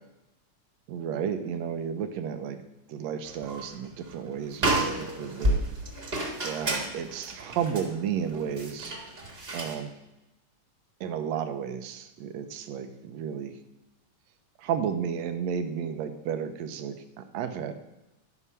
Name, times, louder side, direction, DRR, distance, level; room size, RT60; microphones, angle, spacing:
voice 1, 0.9-2.6 2.9-5.7 6.4-9.0 9.5-10.0 11.0-13.6 14.6-17.7, right 7 dB, 75° right, 8 dB, 1.7 m, -32 dB
sound 1, 3.3-3.8 4.1-4.2 4.5-9.8, right 1 dB, 25° right, 1.2 m, -31 dB
12.5 x 6.0 x 5.5 m, 0.94 s
omnidirectional pair, 3.6 m